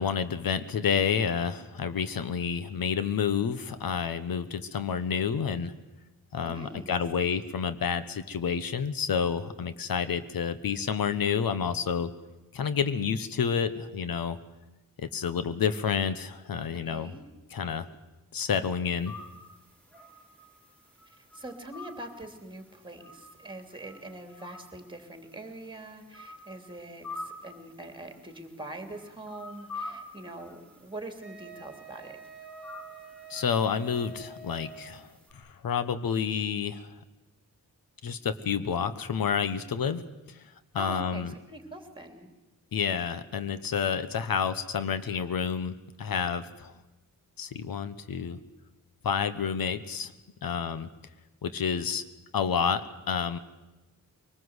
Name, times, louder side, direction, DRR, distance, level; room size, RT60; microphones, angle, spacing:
voice 1, 0.0-5.7 6.3-12.1 12.5-14.4 15.0-17.2 17.5-17.9 18.3-19.1 33.3-36.9 38.0-40.4 40.7-41.3 42.7-46.7 47.4-48.4 49.0-50.1 50.4-50.9 51.4-52.0 52.3-53.4, left 7 dB, 80° left, 12 dB, 1.1 m, -29 dB
voice 2, 6.4-6.9 16.9-17.2 21.2-32.2 40.8-42.3, right 2 dB, 15° right, 6 dB, 2.9 m, -43 dB
sound 1, 19.0-35.3, left 2 dB, 5° left, 3.9 m, -48 dB
Wind instrument woodwind instrument, 31.2-35.1, right 4 dB, 35° left, 5.6 m, -47 dB
23.5 x 19.5 x 8.0 m, 1.1 s
wide cardioid pair, 150°, 34 cm